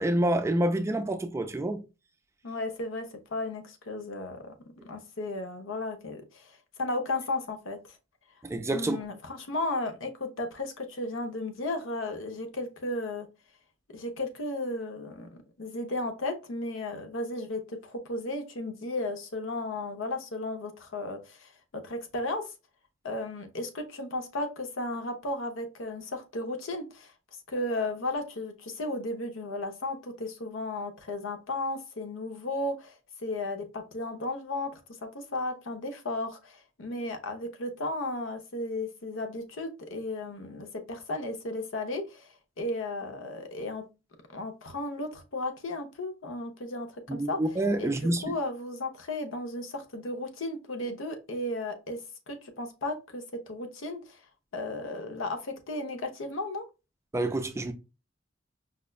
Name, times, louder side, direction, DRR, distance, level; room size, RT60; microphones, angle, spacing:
voice 1, 0.0-1.8 8.4-9.0 47.1-48.4 57.1-57.7, right 1 dB, 15° right, 0.3 m, -27 dB
voice 2, 2.4-4.5 4.8-7.8 8.7-13.3 13.9-15.3 15.6-22.5 23.0-27.1 27.5-33.0 33.2-43.9 44.3-47.4 47.8-48.0 48.2-52.0 52.3-54.2 54.5-56.6, left 2 dB, 80° left, 0.7 m, -34 dB
4.9 x 2.2 x 2.2 m
head